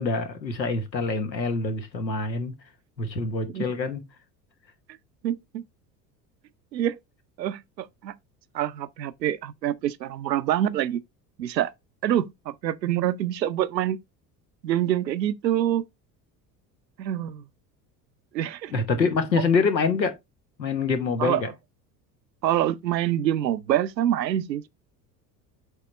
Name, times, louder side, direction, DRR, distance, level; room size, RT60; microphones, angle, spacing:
voice 1, 0.0-2.5 3.0-4.0 18.7-20.1 20.6-21.5, left 4 dB, 90° left, 1.2 m, -25 dB
voice 2, 5.2-5.6 6.7-7.0 7.4-8.1 8.5-11.0 11.4-11.7 12.0-14.0 14.6-15.8 17.0-17.5 18.3-18.7 19.3-19.4 21.2-21.4 22.4-24.7, right 12 dB, 80° right, 0.7 m, -26 dB
8.1 x 3.5 x 4.1 m
figure-of-eight pair, 70°, 50 cm